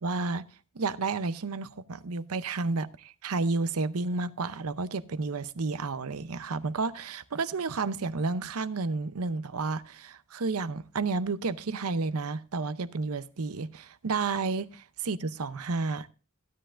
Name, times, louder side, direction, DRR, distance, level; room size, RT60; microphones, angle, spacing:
voice 1, 0.0-0.5 0.7-16.1, right 3 dB, 85° right, 0.7 m, -31 dB
15.5 x 10.0 x 2.5 m
head